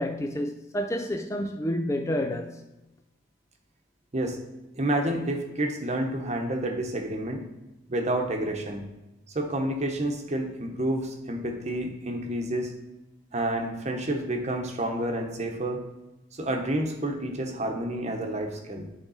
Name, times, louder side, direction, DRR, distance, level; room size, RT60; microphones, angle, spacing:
voice 1, 0.0-2.6, left 1 dB, 15° left, 0.3 m, -29 dB
voice 2, 4.7-7.4 7.9-8.8 9.3-12.7 13.3-15.8 16.3-18.9, right 1 dB, 40° right, 1.0 m, -29 dB
10.5 x 3.6 x 4.1 m
head